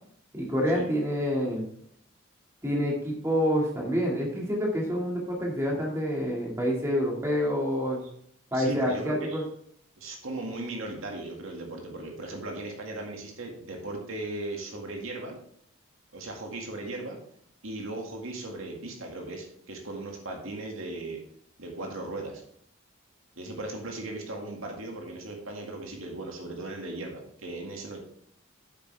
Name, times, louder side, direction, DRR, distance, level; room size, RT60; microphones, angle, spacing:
voice 1, 0.3-1.7 2.6-8.0 8.5-9.4, equal, 15° right, -2 dB, 2.0 m, -27 dB
voice 2, 8.5-9.4 10.0-15.4 16.1-17.2 17.6-21.2 21.6-22.4 23.4-28.0, right 2 dB, 80° right, 1 dB, 2.0 m, -37 dB
8.8 x 7.8 x 3.4 m, 0.67 s
head